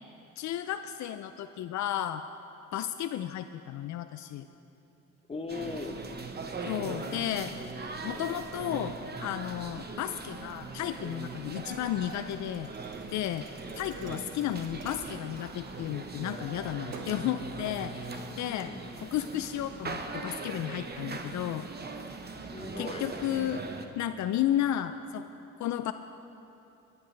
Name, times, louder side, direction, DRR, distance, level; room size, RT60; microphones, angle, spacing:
voice 1, 0.4-2.3 2.7-4.5 6.7-7.5 8.0-12.7 13.1-13.5 13.8-21.7 22.8-23.6 24.0-25.3 25.6-25.9, left 11 dB, 70° left, 10 dB, 0.5 m, -33 dB
voice 2, 5.3-6.0 14.0-14.4 18.5-18.9 22.4-23.1, left 4 dB, 20° left, 5 dB, 0.9 m, -39 dB
sound 1, 5.5-23.9, right 3 dB, 35° right, 1.0 m, -40 dB
Thump thud, 12.1-16.1 16.5-17.3, right 3 dB, 60° right, 1.5 m, -50 dB
21.5 x 10.5 x 3.3 m, 2.8 s
cardioid pair, 90°, 30 cm